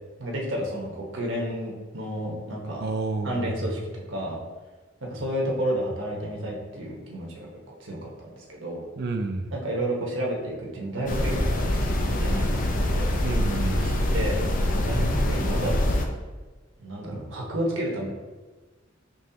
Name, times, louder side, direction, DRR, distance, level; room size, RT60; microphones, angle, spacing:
voice 1, 0.2-2.8 3.2-4.4 5.0-7.5 7.8-8.9 9.5-13.1 13.8-14.4 14.7-16.2 16.8-18.1, right 1 dB, 75° right, -2 dB, 1.1 m, -31 dB
voice 2, 2.8-3.5 9.0-9.5 13.2-14.1, right 3 dB, 55° right, 6 dB, 0.5 m, -30 dB
sound 1, 11.1-16.1, left 1 dB, 45° left, 0.5 m, -24 dB
5.4 x 3.0 x 2.8 m, 1.3 s
head